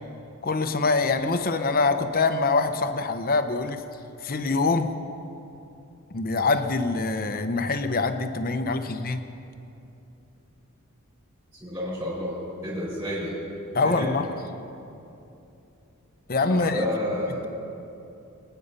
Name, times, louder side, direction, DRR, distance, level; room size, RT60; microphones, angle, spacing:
voice 1, 0.4-3.8 4.2-4.9 6.1-9.2 13.7-14.3 16.3-16.9, left 3 dB, 40° left, 8 dB, 0.8 m, -24 dB
voice 2, 11.6-12.3 12.6-13.3 13.8-14.0 16.5-17.5, left 1 dB, 20° right, -9 dB, 4.5 m, -30 dB
24.0 x 9.4 x 5.6 m, 2.8 s
head